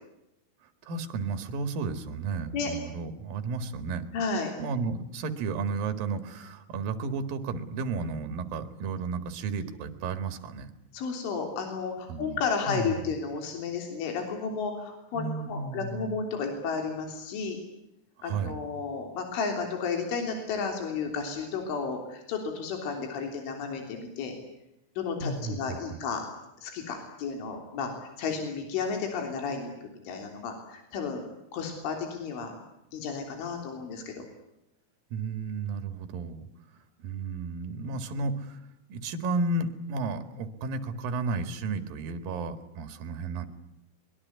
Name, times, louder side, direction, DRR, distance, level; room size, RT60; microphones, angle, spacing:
voice 1, 0.6-4.1 4.6-10.7 12.1-12.4 12.7-13.0 15.1-16.2 18.2-18.6 25.2-25.8 35.1-36.5 36.7-43.5, right 4 dB, 55° right, 9 dB, 3.0 m, -33 dB
voice 2, 4.1-4.5 10.9-17.6 18.2-24.4 25.0-26.2 26.6-27.9 28.2-29.7 30.1-31.2 31.5-32.5 32.9-34.3, left 5 dB, 75° left, 4 dB, 5.8 m, -32 dB
23.5 x 22.5 x 9.5 m, 0.85 s
omnidirectional pair, 5.6 m